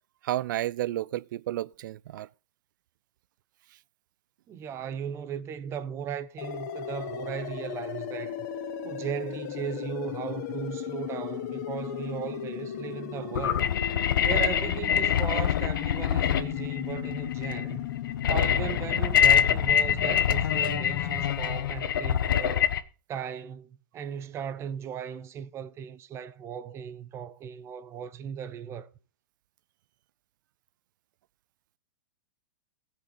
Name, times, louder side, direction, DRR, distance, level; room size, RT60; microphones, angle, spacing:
voice 1, 0.2-2.3, right 14 dB, 65° right, 0.5 m, -31 dB
voice 2, 4.5-8.4 8.8-13.7 14.2-17.8 18.3-22.7 23.1-28.9, right 8 dB, 25° right, 0.9 m, -37 dB
sound 1, 6.4-21.3, left 9 dB, 55° left, 1.8 m, -36 dB
sound 2, 13.3-22.8, left 9 dB, 80° left, 1.2 m, -25 dB
17.0 x 6.1 x 5.7 m
hypercardioid pair, 145°, 11 cm